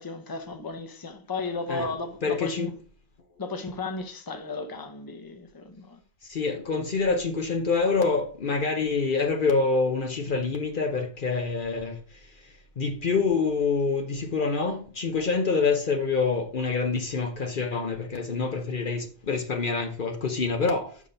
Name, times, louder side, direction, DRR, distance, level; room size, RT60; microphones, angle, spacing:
voice 1, 0.0-2.7 3.4-6.0, left 3 dB, 20° left, 0.9 m, -34 dB
voice 2, 2.2-2.7 6.3-12.2 12.8-21.0, left 4 dB, 55° left, 0.9 m, -26 dB
6.1 x 5.6 x 5.1 m
omnidirectional pair, 1.1 m